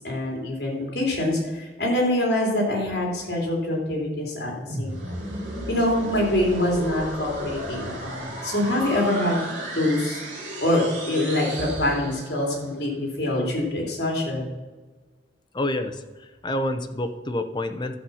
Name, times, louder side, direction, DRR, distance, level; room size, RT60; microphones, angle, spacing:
voice 1, 0.0-4.5 4.8-5.1 5.7-9.4 9.7-10.2 10.6-14.5, left 1 dB, 65° left, -1 dB, 3.3 m, -25 dB
sound 1, 4.7-12.6, right 1 dB, 45° right, 3.0 m, -34 dB
voice 2, 15.5-17.9, left 1 dB, 25° left, 7 dB, 0.7 m, -28 dB
12.0 x 7.3 x 5.6 m, 1.3 s
head